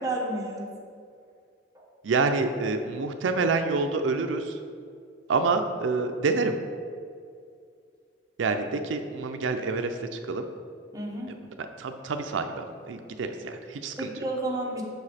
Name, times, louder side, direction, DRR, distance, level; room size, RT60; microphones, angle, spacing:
voice 1, 0.0-0.7 1.7-1.9 10.9-11.3 14.0-14.8, right 1 dB, 20° right, -2 dB, 0.9 m, -31 dB
voice 2, 2.0-4.6 5.3-6.6 8.4-10.5 11.4-14.1, right 3 dB, 85° right, 7 dB, 0.4 m, -27 dB
6.5 x 4.9 x 4.2 m, 2.3 s
head